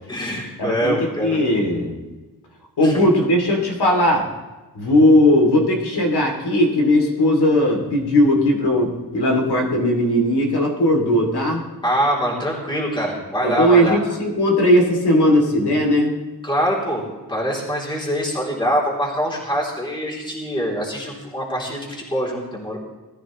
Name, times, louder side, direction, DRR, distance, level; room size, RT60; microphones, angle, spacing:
voice 1, 0.1-1.4 2.8-3.0 11.8-14.0 16.4-22.8, equal, 10° left, -4 dB, 3.3 m, -24 dB
voice 2, 0.6-2.0 2.8-4.3 4.7-11.6 13.4-16.2, left 1 dB, 75° left, 1 dB, 2.9 m, -18 dB
20.0 x 13.5 x 3.2 m, 1.2 s
wide cardioid pair, 170°, 40 cm